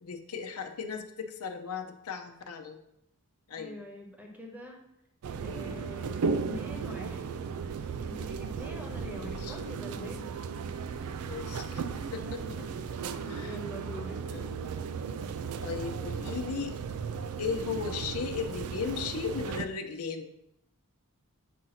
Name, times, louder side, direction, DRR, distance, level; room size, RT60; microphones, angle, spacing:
voice 1, 0.0-2.8 3.5-3.8 9.4-9.6 11.2-12.6 13.2-13.9 14.3-14.5 15.6-16.7 17.4-20.3, left 5 dB, 90° left, 6 dB, 0.7 m, -36 dB
voice 2, 3.5-4.8 5.3-7.2 8.0-10.2 12.6-14.2, left 1 dB, 5° right, 0 dB, 1.0 m, -45 dB
sound 1, 5.2-19.7, right 5 dB, 90° right, 0.4 m, -35 dB
7.4 x 2.7 x 5.7 m, 0.81 s
head